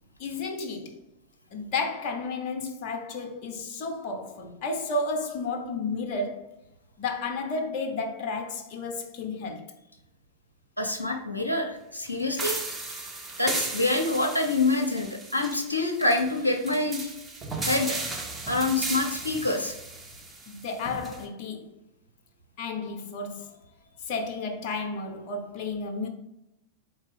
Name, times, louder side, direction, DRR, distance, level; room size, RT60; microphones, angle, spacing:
voice 1, 0.2-1.0 1.5-6.5 7.0-9.7 20.5-21.7 22.6-23.5 24.0-26.1, left 3 dB, 45° left, 0.6 m, -32 dB
voice 2, 10.8-12.6 13.4-17.1 17.7-18.0 18.5-19.8, left 2 dB, 85° left, 0.5 m, -26 dB
sound 1, 12.4-21.2, right 3 dB, 15° right, 0.7 m, -35 dB
4.3 x 3.3 x 3.4 m
figure-of-eight pair, 90°, 0 cm